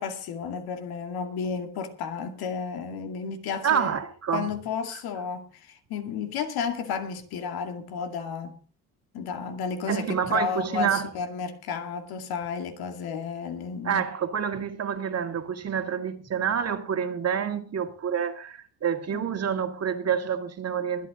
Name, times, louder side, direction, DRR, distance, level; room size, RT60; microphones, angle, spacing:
voice 1, 0.0-3.9 4.3-8.6 9.1-14.1 19.1-19.3, left 6 dB, 75° left, 2.4 m, -32 dB
voice 2, 3.6-4.5 9.9-11.1 13.8-21.1, right 7 dB, 40° right, 2.1 m, -28 dB
23.5 x 9.0 x 3.8 m
cardioid pair, 110°, 37 cm